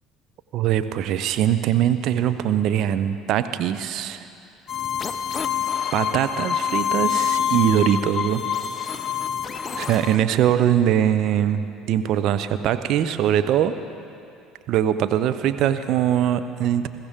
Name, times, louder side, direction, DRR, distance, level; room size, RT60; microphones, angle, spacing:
voice 1, 0.5-4.2 5.9-8.4 9.7-13.7 14.7-16.9, right 10 dB, 60° right, 10 dB, 0.7 m, -22 dB
sound 1, 4.7-10.2, left 8 dB, 35° left, 0.7 m, -26 dB
21.0 x 15.0 x 3.7 m, 2.5 s
hypercardioid pair, 60°, 0 cm